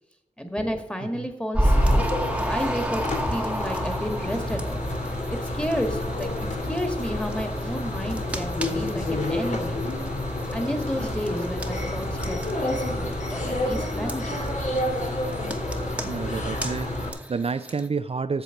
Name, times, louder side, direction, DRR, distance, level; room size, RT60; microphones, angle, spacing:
voice 1, 0.4-2.0 2.5-4.9 5.5-6.3 6.7-9.8 10.5-14.6, equal, 10° left, 6 dB, 1.7 m, -31 dB
sound 1, 1.5-17.9, equal, 10° right, 1.1 m, -32 dB
sound 2, 1.6-17.1, left 1 dB, 70° left, 2.6 m, -29 dB
voice 2, 16.0-18.4, right 5 dB, 50° right, 11 dB, 0.4 m, -29 dB
8.2 x 7.2 x 5.8 m, 0.85 s
wide cardioid pair, 65°, 13 cm